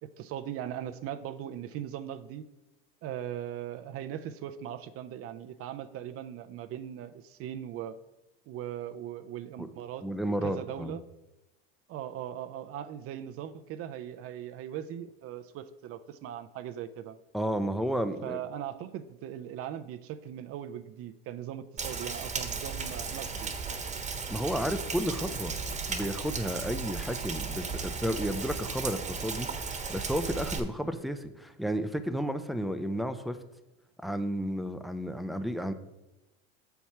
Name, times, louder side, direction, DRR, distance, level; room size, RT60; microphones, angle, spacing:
voice 1, 0.0-2.4 3.0-7.9 8.5-11.0 11.9-17.2 18.2-23.5, right 10 dB, 45° right, 10 dB, 0.6 m, -39 dB
voice 2, 10.0-11.0 17.3-18.4 24.3-25.5 25.9-33.4 34.0-35.7, equal, ahead, 9 dB, 0.5 m, -32 dB
Rain, 21.8-30.6, right 5 dB, 20° right, 1.2 m, -35 dB
7.1 x 4.6 x 5.6 m, 1.0 s
supercardioid pair, 95°, 31 cm